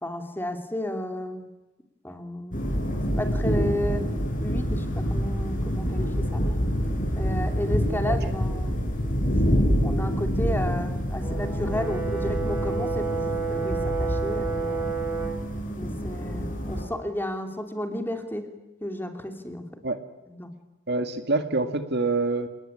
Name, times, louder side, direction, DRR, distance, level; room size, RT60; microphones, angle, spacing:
voice 1, 0.0-1.5 2.0-2.7 3.2-4.1 4.4-6.5 7.2-8.8 9.8-14.8 15.7-19.7 20.3-20.5, left 1 dB, 10° left, 6 dB, 2.8 m, -33 dB
sound 1, 2.5-16.8, equal, 45° left, 6.7 m, -27 dB
voice 2, 7.8-8.2 19.8-20.0 20.9-22.5, right 3 dB, 60° right, 8 dB, 2.1 m, -26 dB
Brass instrument, 11.2-15.4, right 5 dB, 15° right, 6.3 m, -30 dB
29.0 x 20.0 x 10.0 m, 1.1 s
head